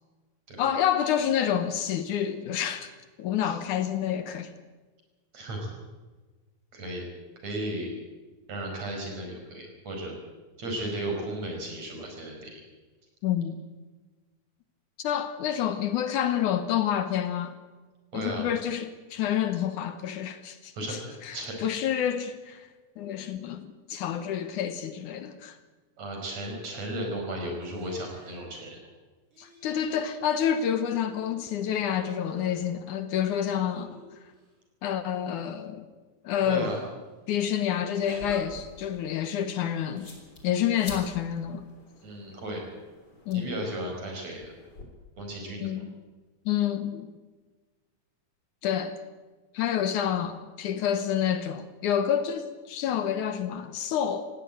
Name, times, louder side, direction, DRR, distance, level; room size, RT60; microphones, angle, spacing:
voice 1, 0.6-2.9 3.2-4.5 13.2-13.6 15.0-17.5 18.1-21.0 21.3-21.4 21.6-22.7 23.0-25.6 29.4-34.0 34.8-35.9 36.2-36.8 37.3-40.1 40.4-41.7 43.3-43.5 45.6-45.8 46.5-47.1 48.6-49.0 49.5-54.3, left 9 dB, 70° left, 2.4 m, -28 dB
voice 2, 5.3-5.7 6.7-7.0 7.4-8.0 8.5-10.1 10.6-12.6 18.1-18.5 20.7-21.6 26.0-28.8 36.5-36.8 42.0-42.6 43.3-44.5 45.2-45.7, right 1 dB, 50° right, 6.1 m, -35 dB
sound 1, 27.6-28.4 29.3-30.1 30.4-31.5 31.9-32.6 33.3-34.4 35.2-35.5 36.2-36.9 38.1-38.4, equal, 35° right, 6.0 m, -48 dB
sound 2, 38.0-44.8, left 2 dB, 30° left, 3.8 m, -48 dB
18.5 x 16.0 x 9.0 m
omnidirectional pair, 3.9 m